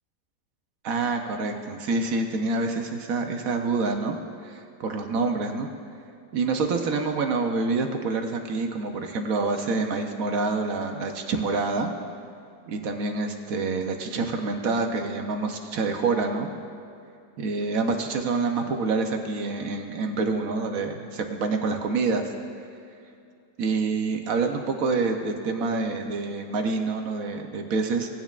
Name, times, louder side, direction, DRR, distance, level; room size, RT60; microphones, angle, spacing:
voice 1, 0.8-4.2 4.4-5.7 6.3-11.9 12.7-16.5 17.4-22.3 23.6-28.1, right 3 dB, 60° right, 4 dB, 1.0 m, -27 dB
17.5 x 9.1 x 2.4 m, 2.5 s
omnidirectional pair, 1.9 m